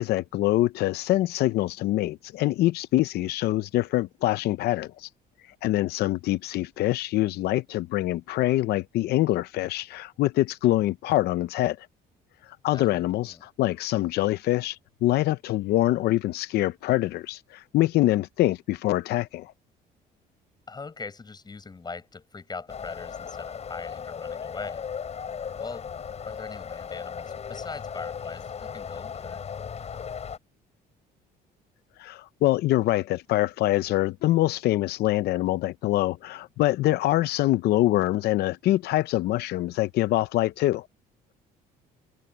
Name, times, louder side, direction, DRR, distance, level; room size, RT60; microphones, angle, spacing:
voice 1, 0.0-5.1 5.6-11.9 12.5-19.5 32.0-40.9, left 16 dB, 70° left, 0.6 m, -25 dB
voice 2, 12.7-13.4 20.7-24.8 25.6-25.9 26.3-29.4, left 4 dB, 25° left, 7.5 m, -41 dB
sound 1, 22.7-30.4, left 7 dB, 40° left, 6.9 m, -37 dB
cardioid pair, 110°, 17 cm